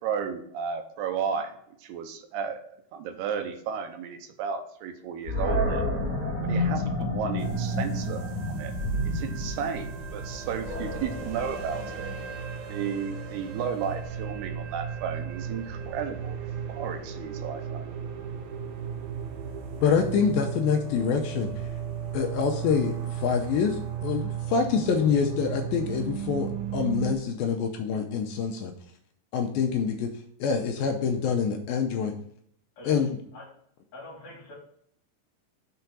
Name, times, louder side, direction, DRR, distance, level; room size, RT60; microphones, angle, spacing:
voice 1, 0.0-5.9 6.4-8.2 8.5-8.7 9.1-12.1 12.7-16.4 16.7-17.8, right 7 dB, 85° right, 6 dB, 2.9 m, -33 dB
Animal, 5.3-12.4, left 1 dB, 35° right, 2.6 m, -30 dB
sound 1, 7.4-27.1, right 9 dB, 70° right, 1.9 m, -36 dB
sound 2, 8.8-20.0, equal, 50° right, 2.9 m, -44 dB
voice 2, 19.8-21.5 22.1-28.7 29.3-30.1 30.4-32.1 32.8-33.1, left 6 dB, 80° left, 4 dB, 2.3 m, -26 dB
voice 3, 33.9-34.6, left 1 dB, 50° left, -2 dB, 3.1 m, -43 dB
6.8 x 4.3 x 6.0 m, 0.67 s
omnidirectional pair, 4.6 m